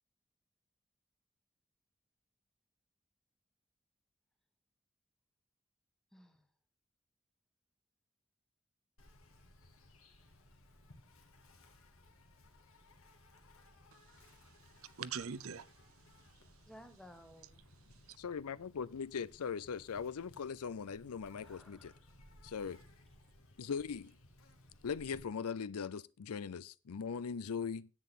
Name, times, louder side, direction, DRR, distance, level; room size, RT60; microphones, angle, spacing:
voice 1, 6.1-6.5 16.7-17.7 21.4-22.1, equal, ahead, 1.2 m, -57 dB
Insect, 9.0-25.2, left 1 dB, 70° left, 2.1 m, -61 dB
voice 2, 13.9-15.7 17.9-18.2, right 7 dB, 70° right, 0.6 m, -45 dB
voice 3, 18.2-21.9 22.4-22.8 23.6-24.1 24.8-27.9, left 6 dB, 90° left, 0.5 m, -40 dB
10.0 x 8.7 x 4.1 m
head